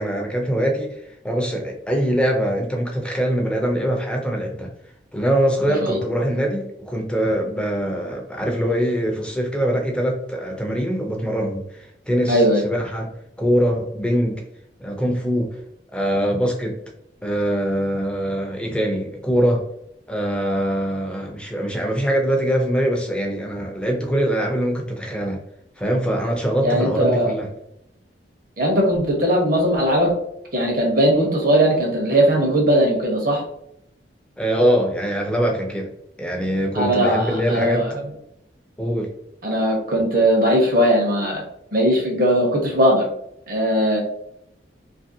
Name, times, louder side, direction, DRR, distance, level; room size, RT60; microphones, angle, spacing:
voice 1, 0.0-4.7 5.1-13.1 13.4-14.4 14.8-15.6 15.9-16.8 17.2-19.6 20.1-25.4 25.8-27.5 34.4-35.9 36.2-37.9 38.8-39.1, equal, 5° left, 1 dB, 0.4 m, -23 dB
voice 2, 12.3-12.6 26.6-27.3 28.6-30.1 30.5-33.4 36.7-37.9 39.4-41.4 41.7-43.1 43.5-44.0, equal, 50° right, 0 dB, 0.8 m, -19 dB
2.8 x 2.6 x 2.6 m, 0.77 s
head